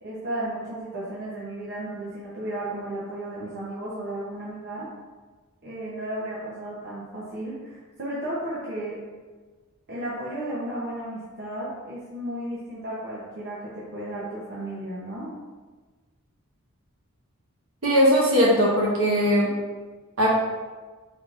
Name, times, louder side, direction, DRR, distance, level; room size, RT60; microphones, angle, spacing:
voice 1, 0.0-4.9 5.6-9.0 9.9-15.3, right 1 dB, 50° right, -8 dB, 0.8 m, -34 dB
voice 2, 17.8-19.5 20.2-20.3, equal, 65° right, -4 dB, 1.2 m, -19 dB
5.0 x 3.6 x 2.5 m, 1.3 s
head